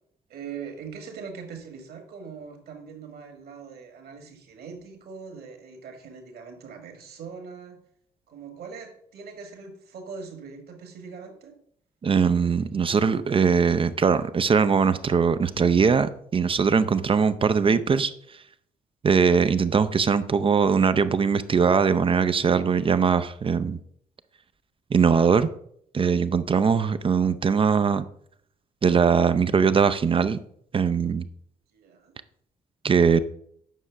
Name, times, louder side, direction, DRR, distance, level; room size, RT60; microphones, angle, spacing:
voice 1, 0.3-7.8 8.3-11.5 31.7-32.1, right 5 dB, 50° right, 1.7 m, -41 dB
voice 2, 12.0-18.1 19.0-23.8 24.9-25.5 25.9-28.0 28.8-30.4 30.7-31.2 32.8-33.2, right 6 dB, 25° right, 0.5 m, -21 dB
9.1 x 6.2 x 3.4 m
figure-of-eight pair, 40°, 20 cm